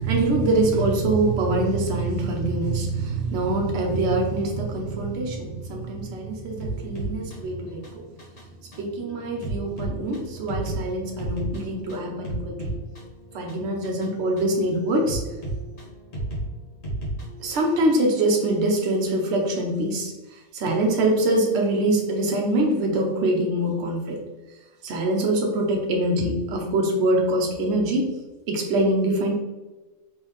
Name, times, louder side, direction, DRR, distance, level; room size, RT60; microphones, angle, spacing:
voice 1, 0.0-8.0 8.8-12.7 13.3-15.2 17.4-24.2 24.8-28.1 28.5-29.3, right 2 dB, 70° right, 0 dB, 1.0 m, -24 dB
sound 1, 6.6-17.8, right 2 dB, 65° left, 1.5 m, -34 dB
3.7 x 3.2 x 3.0 m, 1.1 s
omnidirectional pair, 1.2 m